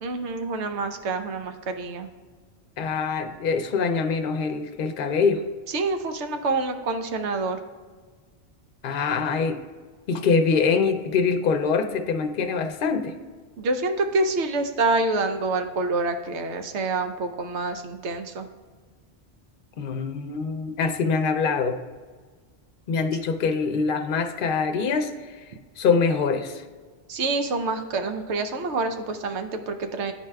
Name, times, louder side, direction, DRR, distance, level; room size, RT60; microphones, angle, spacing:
voice 1, 0.0-2.1 5.7-7.6 13.6-18.5 27.1-30.1, right 3 dB, 85° right, 7 dB, 1.0 m, -27 dB
voice 2, 2.8-5.4 8.8-9.6 10.1-13.1 19.8-21.8 22.9-25.4 25.8-26.6, left 5 dB, 60° left, 6 dB, 0.7 m, -24 dB
10.5 x 4.5 x 2.3 m, 1.5 s
omnidirectional pair, 1.1 m